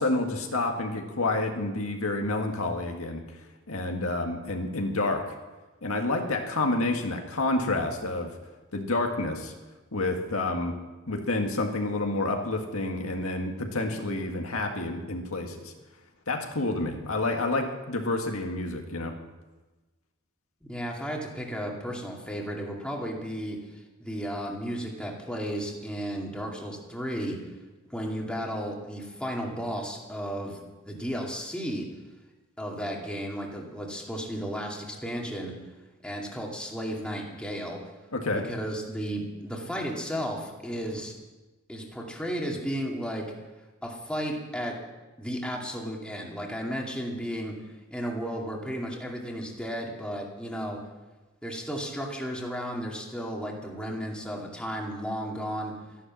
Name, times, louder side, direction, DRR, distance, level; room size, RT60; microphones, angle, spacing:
voice 1, 0.0-3.2 3.7-5.3 5.8-8.3 8.7-9.5 9.9-10.8 11.1-15.7 16.3-19.2 38.1-38.5, left 2 dB, 75° left, 3 dB, 1.9 m, -29 dB
voice 2, 20.6-23.6 24.0-27.4 27.9-30.6 30.8-31.8 32.6-35.5 36.0-37.8 38.3-41.1 41.7-43.2 43.8-44.7 45.2-47.5 47.9-50.8 51.4-55.7, equal, 5° left, -1 dB, 2.4 m, -34 dB
13.5 x 11.5 x 7.5 m, 1.2 s
head